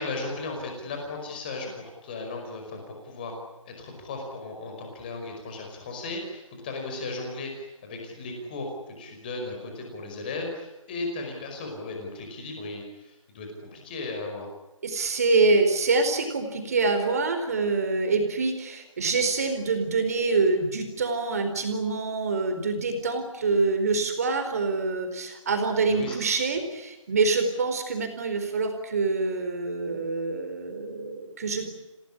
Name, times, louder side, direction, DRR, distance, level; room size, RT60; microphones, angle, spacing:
voice 1, 0.0-1.7 2.0-3.3 3.6-8.7 9.0-14.5 25.9-26.1, left 3 dB, 15° left, 2 dB, 5.2 m, -36 dB
voice 2, 14.8-31.7, right 3 dB, 30° right, 6 dB, 4.4 m, -25 dB
29.5 x 18.5 x 9.9 m, 1.0 s
figure-of-eight pair, 175°, 17 cm